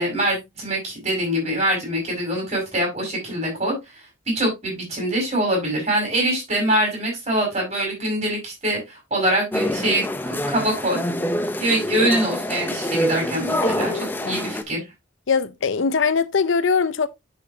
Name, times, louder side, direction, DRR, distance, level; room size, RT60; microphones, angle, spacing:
voice 1, 0.0-3.7 4.3-10.0 10.3-11.0 11.6-13.9 14.3-14.8, right 1 dB, 30° right, 5.4 m, -24 dB
sound 1, 9.5-14.6, left 1 dB, 10° left, 0.6 m, -26 dB
voice 2, 13.6-14.4 15.3-17.1, left 5 dB, 70° left, 0.6 m, -22 dB
9.7 x 5.8 x 2.7 m
head